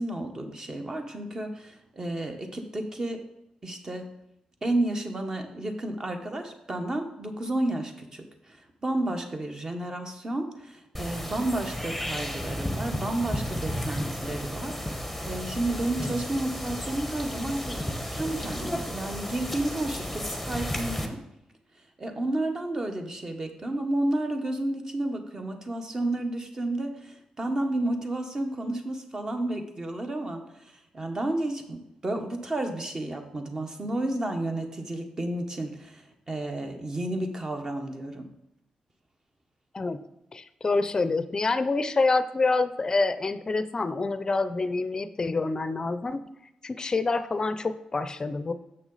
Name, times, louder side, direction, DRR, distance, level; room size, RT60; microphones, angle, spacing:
voice 1, 0.0-3.2 3.6-4.1 4.6-21.2 22.0-38.3, right 1 dB, 30° right, 5 dB, 1.1 m, -31 dB
sound 1, 10.9-21.1, equal, ahead, 1.0 m, -33 dB
voice 2, 40.3-46.2 46.6-48.5, left 3 dB, 30° left, 12 dB, 0.5 m, -27 dB
6.9 x 6.1 x 4.0 m, 0.86 s
cardioid pair, 80°, 2 cm